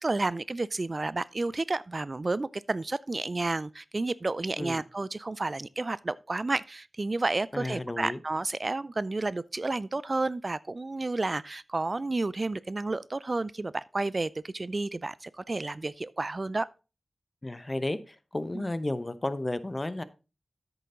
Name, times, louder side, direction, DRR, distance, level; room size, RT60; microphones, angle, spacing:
voice 1, 0.0-16.7 18.5-18.6, right 2 dB, 45° right, 0.3 m, -31 dB
voice 2, 7.5-8.2 17.4-20.0, left 1 dB, 30° left, 0.8 m, -33 dB
8.5 x 6.9 x 3.8 m
cardioid pair, 45°, 0 cm